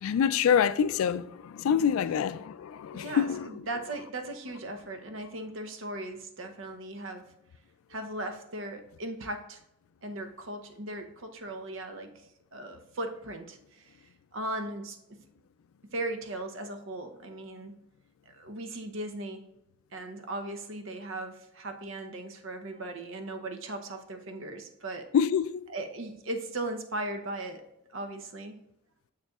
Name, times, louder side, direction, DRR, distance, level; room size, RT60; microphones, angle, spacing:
voice 1, 0.0-3.5 25.1-25.5, left 8 dB, 85° left, 0.3 m, -26 dB
voice 2, 2.9-7.3 7.9-9.6 10.0-12.1 12.5-15.2 15.9-17.7 18.3-19.5 19.9-25.1 25.7-27.6 27.9-28.6, right 2 dB, 70° right, 0.8 m, -38 dB
6.7 x 6.6 x 2.4 m
head